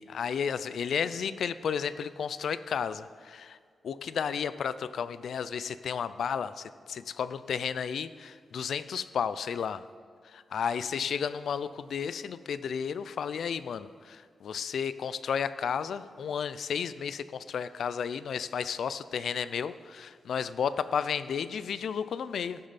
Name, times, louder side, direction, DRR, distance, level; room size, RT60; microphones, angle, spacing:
voice 1, 0.0-3.6 3.8-9.8 10.3-22.6, left 7 dB, 75° left, 15 dB, 0.4 m, -33 dB
16.0 x 6.8 x 4.1 m, 2.1 s
wide cardioid pair, 110°, 0 cm